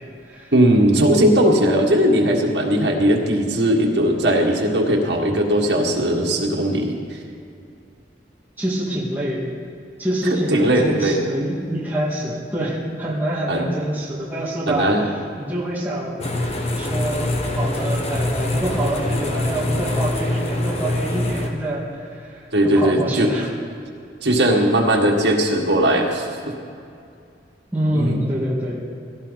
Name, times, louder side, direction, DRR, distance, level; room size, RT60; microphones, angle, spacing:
voice 1, 0.5-7.2 10.5-11.2 13.5-13.7 14.7-15.1 22.5-23.3 24.2-26.3 27.9-28.2, right 1 dB, 80° right, -1 dB, 1.8 m, -18 dB
voice 2, 8.6-9.5 10.0-15.0 15.4-16.2 16.8-17.3 17.5-22.4 22.7-23.5 27.7-28.8, right 1 dB, 10° right, -7 dB, 2.1 m, -26 dB
sound 1, 16.2-21.5, left 1 dB, 35° left, 1.2 m, -24 dB
17.0 x 12.5 x 4.1 m, 2.5 s
head